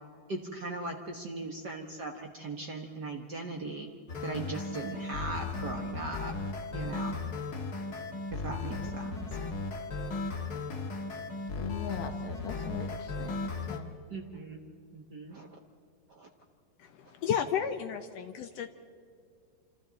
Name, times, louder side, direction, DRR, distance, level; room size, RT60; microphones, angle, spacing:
voice 1, 0.3-3.9 4.2-6.3 6.7-7.2 8.3-9.2 14.1-14.6 14.9-15.5 16.2-16.3, right 3 dB, 85° right, 2 dB, 0.9 m, -39 dB
sound 1, 4.1-13.8, left 3 dB, 45° left, 1.3 m, -36 dB
voice 2, 11.6-13.9, left 7 dB, 65° left, 6 dB, 2.5 m, -41 dB
voice 3, 16.8-18.7, left 8 dB, 80° left, 7 dB, 1.4 m, -33 dB
27.5 x 26.5 x 4.1 m, 2.3 s
omnidirectional pair, 3.9 m